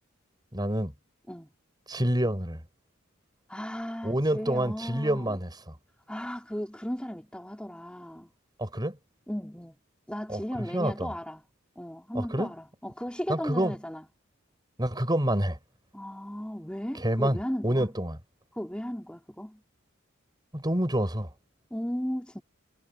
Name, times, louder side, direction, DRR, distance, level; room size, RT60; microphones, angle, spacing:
voice 1, 0.5-0.9 1.9-2.6 4.0-5.5 8.6-9.0 10.3-10.4 10.7-11.1 12.1-12.5 13.3-13.8 14.8-15.6 17.0-17.4 17.6-18.2 20.5-21.3, right 1 dB, 20° right, 6.2 m, -27 dB
voice 2, 3.5-5.4 6.1-8.3 9.3-9.8 10.1-11.4 11.7-14.1 15.9-17.9 18.5-19.6 21.7-22.4, equal, 5° left, 3.0 m, -36 dB
head